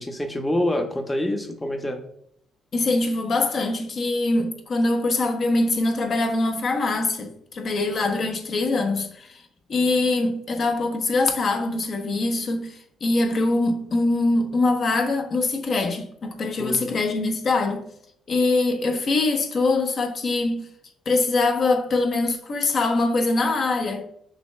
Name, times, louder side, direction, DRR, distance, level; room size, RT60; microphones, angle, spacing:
voice 1, 0.0-2.0 16.6-16.9, left 1 dB, 15° left, 0.7 m, -26 dB
voice 2, 2.7-9.4 9.7-17.9 18.3-20.7 21.1-24.1, left 2 dB, 55° left, 0.8 m, -23 dB
6.0 x 3.3 x 2.2 m
cardioid pair, 90°, 0 cm